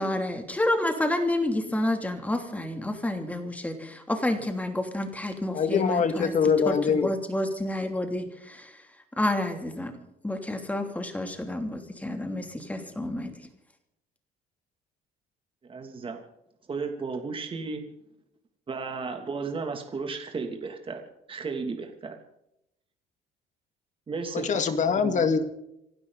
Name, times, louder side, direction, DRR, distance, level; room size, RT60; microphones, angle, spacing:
voice 1, 0.0-6.3 6.7-8.8 9.2-9.9 10.2-13.3, left 1 dB, 10° left, 5 dB, 3.0 m, -29 dB
voice 2, 5.5-7.1 24.3-25.4, left 6 dB, 45° left, 8 dB, 2.2 m, -23 dB
voice 3, 15.7-16.2 16.7-17.8 18.7-21.0 21.3-22.2 24.1-24.5 25.0-25.3, right 4 dB, 30° right, 3 dB, 2.8 m, -34 dB
27.5 x 12.5 x 4.1 m, 0.82 s
cardioid pair, 110°, 17 cm